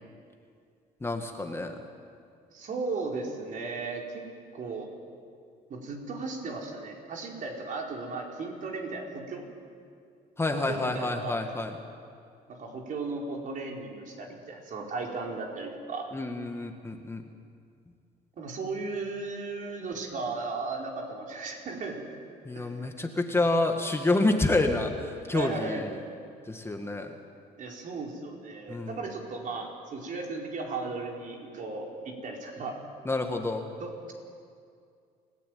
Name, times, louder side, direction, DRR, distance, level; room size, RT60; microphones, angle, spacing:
voice 1, 1.0-1.8 10.4-11.8 16.1-17.2 22.5-25.9 26.5-27.1 28.7-29.0 33.1-33.6, left 2 dB, 15° left, 4 dB, 1.8 m, -28 dB
voice 2, 2.5-4.2 4.5-4.9 5.7-9.5 10.5-11.5 12.5-16.1 18.4-22.0 22.5-22.9 25.3-25.9 27.6-32.8 33.8-34.1, right 3 dB, 50° right, 0 dB, 4.7 m, -36 dB
28.0 x 16.5 x 9.4 m, 2.3 s
cardioid pair, 110°, 17 cm